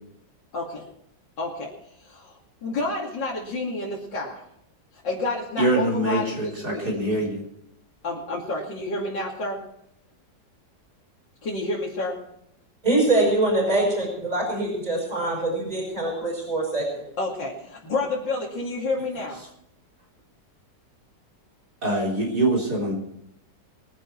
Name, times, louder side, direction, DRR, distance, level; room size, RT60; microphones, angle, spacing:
voice 1, 0.5-0.8 1.4-1.7 2.0-4.4 5.0-6.9 8.0-9.6 11.4-12.2 17.2-19.4, left 2 dB, 80° left, -5 dB, 3.3 m, -29 dB
voice 2, 5.6-7.4 21.8-22.9, right 1 dB, 60° right, -2 dB, 4.3 m, -24 dB
voice 3, 12.8-17.0, right 2 dB, 20° right, 0 dB, 5.8 m, -24 dB
22.5 x 10.5 x 4.6 m, 0.75 s
omnidirectional pair, 1.9 m